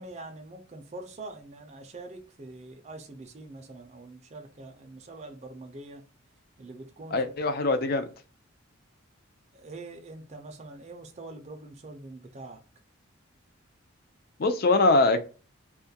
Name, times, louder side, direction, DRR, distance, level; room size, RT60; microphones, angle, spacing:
voice 1, 0.0-6.0 6.6-7.3 9.5-12.6, right 2 dB, 30° right, 0.4 m, -44 dB
voice 2, 7.1-8.1 14.4-15.2, left 2 dB, 45° left, 0.4 m, -22 dB
2.3 x 2.2 x 2.7 m
head